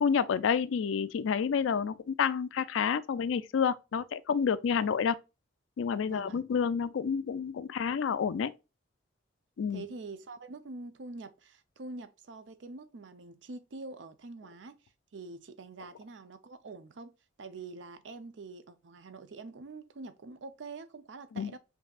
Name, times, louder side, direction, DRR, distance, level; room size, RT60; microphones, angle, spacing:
voice 1, 0.0-5.2 5.8-8.5 9.6-9.8 21.4-21.5, left 6 dB, 85° left, 0.4 m, -29 dB
voice 2, 6.0-6.4 9.7-14.7 15.1-17.1 17.4-21.6, right 3 dB, 70° right, 0.5 m, -45 dB
5.4 x 2.7 x 2.3 m
head